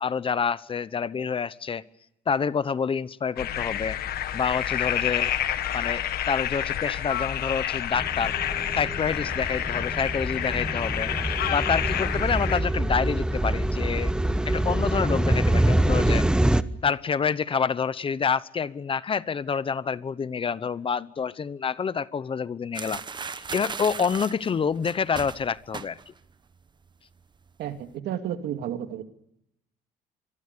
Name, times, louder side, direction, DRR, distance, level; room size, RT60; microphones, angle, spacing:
voice 1, 0.0-1.8 2.3-4.0 4.3-5.3 5.7-8.3 8.7-14.1 14.5-16.3 16.8-23.0 23.3-26.0, left 6 dB, 30° left, 17 dB, 0.9 m, -27 dB
sound 1, 3.4-12.6, left 11 dB, 70° left, 1.8 m, -29 dB
sound 2, 7.9-16.6, right 1 dB, 5° right, 1.0 m, -25 dB
sound 3, 22.7-26.3 26.6-26.9 27.2-27.8, right 5 dB, 25° right, 1.2 m, -37 dB
voice 2, 27.6-29.0, right 10 dB, 75° right, 7 dB, 2.5 m, -32 dB
26.0 x 23.0 x 6.8 m, 0.79 s
cardioid pair, 110°, 17 cm